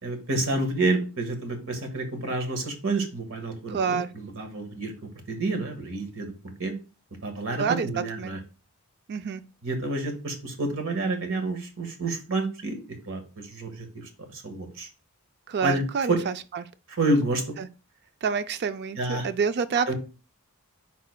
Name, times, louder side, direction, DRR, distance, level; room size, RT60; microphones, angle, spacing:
voice 1, 0.0-4.9 5.3-6.3 6.6-6.7 7.2-8.4 9.6-14.9 15.6-16.2 16.9-17.4 19.0-19.3 19.9-20.0, right 2 dB, 65° right, 1.5 m, -29 dB
voice 2, 3.7-4.1 7.6-7.9 8.2-8.4 9.1-9.4 15.5-16.6 17.6-17.7 18.2-20.0, right 6 dB, 50° right, 0.4 m, -28 dB
10.5 x 4.1 x 2.2 m
head